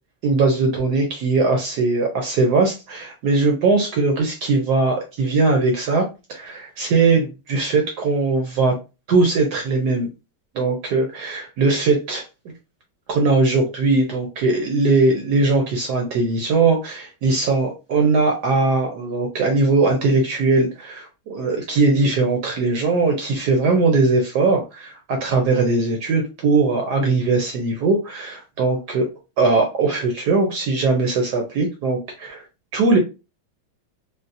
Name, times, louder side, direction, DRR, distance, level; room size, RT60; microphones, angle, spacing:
voice 1, 0.2-8.7 9.1-10.1 10.5-12.2 13.1-29.1 29.4-32.4 32.7-33.0, right 3 dB, 70° right, 2 dB, 0.9 m, -20 dB
3.8 x 2.0 x 2.6 m, 0.29 s
omnidirectional pair, 2.3 m